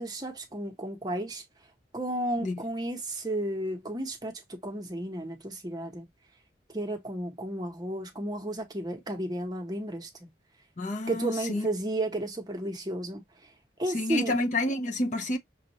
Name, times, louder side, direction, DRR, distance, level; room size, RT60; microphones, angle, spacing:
voice 1, 0.0-1.4 1.9-6.1 6.7-10.3 11.1-13.5 13.8-14.3, right 1 dB, 20° right, 0.8 m, -33 dB
voice 2, 10.8-11.7 13.9-15.4, left 2 dB, 45° left, 0.6 m, -29 dB
6.2 x 2.4 x 2.9 m
head